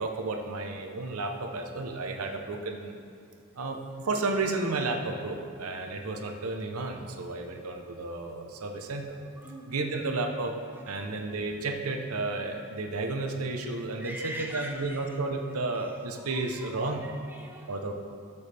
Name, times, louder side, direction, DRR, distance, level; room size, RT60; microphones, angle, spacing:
voice 1, 0.0-2.9 3.6-9.2 9.7-10.5 10.9-17.0 17.7-17.9, right 3 dB, 80° right, 4 dB, 0.8 m, -32 dB
voice 2, 9.2-9.9 10.7-11.1 14.0-15.2 15.7-15.9 16.2-17.8, right 1 dB, 10° right, 0 dB, 0.7 m, -43 dB
12.5 x 7.0 x 3.4 m, 2.4 s
head